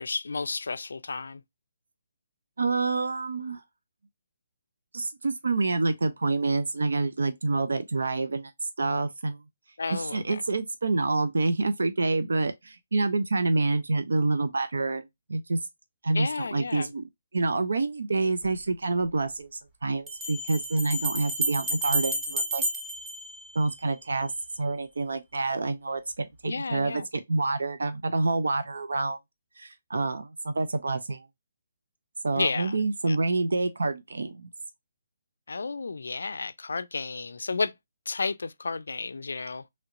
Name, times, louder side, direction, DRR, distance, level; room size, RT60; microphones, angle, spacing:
voice 1, 0.0-1.4 9.8-10.4 16.1-16.9 26.4-27.1 32.4-32.8 33.1-33.2 35.5-37.7 38.1-39.6, left 4 dB, 90° left, 0.3 m, -32 dB
voice 2, 2.6-3.6 4.9-8.5 8.8-9.4 9.9-15.6 16.0-22.6 23.5-24.3 24.6-29.2 29.6-31.3 32.2-34.5, right 3 dB, 90° right, 0.5 m, -27 dB
Bell, 18.4-18.5 20.1-24.0, right 2 dB, 10° right, 0.6 m, -31 dB
3.1 x 2.9 x 2.4 m
hypercardioid pair, 165°, 0 cm